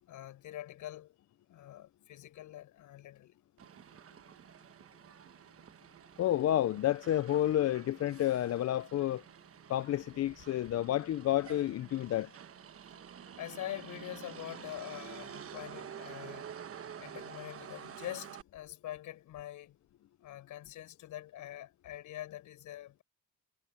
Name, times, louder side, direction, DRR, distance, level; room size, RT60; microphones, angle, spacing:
voice 1, 0.1-1.1 1.5-3.4 13.4-16.5 17.0-19.8 20.2-23.0, left 13 dB, 85° left, 6.0 m, -44 dB
Motor vehicle (road), 3.6-18.4, right 8 dB, 50° right, 1.2 m, -49 dB
voice 2, 6.2-9.2 9.7-12.3, left 12 dB, 55° left, 0.6 m, -30 dB
cardioid pair, 90°, 30 cm